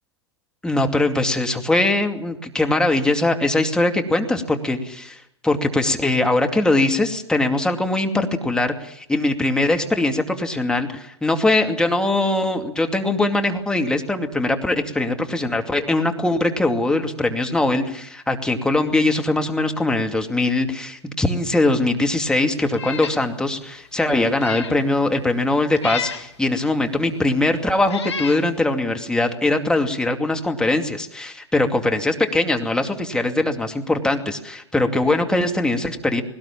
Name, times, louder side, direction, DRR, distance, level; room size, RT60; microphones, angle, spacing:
voice 1, 0.6-36.2, left 2 dB, 5° left, 4 dB, 2.5 m, -21 dB
Meow, 22.7-23.2 23.6-23.7 24.2-24.8 25.8-26.3 27.2-27.3 27.8-28.4, left 6 dB, 75° left, 2.0 m, -31 dB
20.0 x 18.5 x 7.4 m, 0.73 s
figure-of-eight pair, 95°, 14 cm